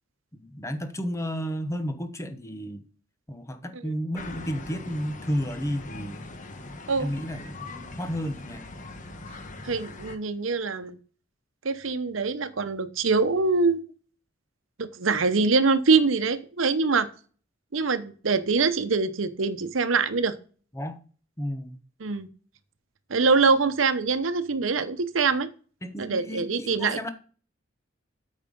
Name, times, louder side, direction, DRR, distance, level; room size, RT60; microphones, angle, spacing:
voice 1, 0.3-2.8 3.3-6.2 7.0-8.6 20.7-21.0 21.4-21.8 25.8-27.1, equal, 15° left, 1.0 m, -32 dB
sound 1, 4.1-10.2, left 2 dB, 40° left, 1.1 m, -41 dB
voice 2, 9.6-11.0 11.6-13.9 14.8-17.1 17.7-20.3 22.0-22.3 23.1-25.5 26.0-27.1, right 4 dB, 80° right, 0.8 m, -24 dB
8.7 x 5.4 x 5.3 m
head